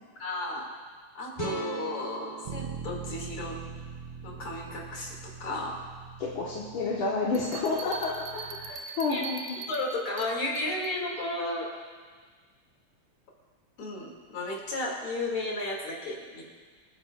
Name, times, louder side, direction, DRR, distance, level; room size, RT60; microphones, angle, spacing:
voice 1, 0.2-0.7 1.1-3.6 4.2-5.8 9.1-9.2 9.5-11.7 13.8-16.4, left 2 dB, 90° left, -2 dB, 3.4 m, -33 dB
sound 1, 1.4-4.6, right 3 dB, 20° left, 3.4 m, -39 dB
Bass guitar, 2.5-8.7, right 6 dB, 80° right, 1.6 m, -43 dB
voice 2, 6.2-9.6, left 3 dB, 75° left, -4 dB, 2.3 m, -30 dB
sound 2, 7.3-11.0, right 5 dB, 60° right, 1.2 m, -42 dB
27.5 x 9.8 x 2.4 m, 1.5 s
omnidirectional pair, 2.3 m